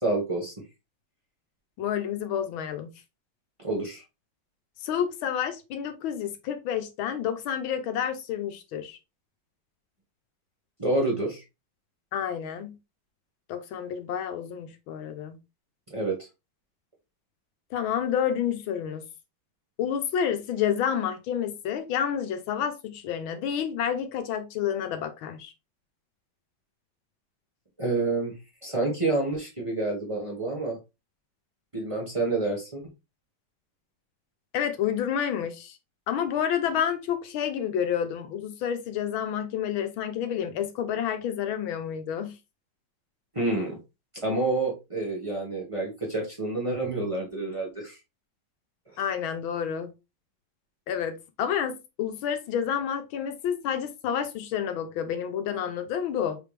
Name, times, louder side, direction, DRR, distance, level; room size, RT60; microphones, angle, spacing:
voice 1, 0.0-0.5 3.6-4.0 10.8-11.4 15.9-16.2 27.8-30.8 31.7-32.8 43.3-43.8 44.1-48.0, right 2 dB, 20° right, 1.2 m, -28 dB
voice 2, 1.8-2.9 4.8-9.0 12.1-12.8 13.5-15.4 17.7-19.0 19.8-25.5 34.5-35.8 36.1-42.3 49.0-49.9 50.9-56.4, left 8 dB, 85° left, 1.6 m, -29 dB
4.5 x 3.3 x 3.3 m
omnidirectional pair, 2.2 m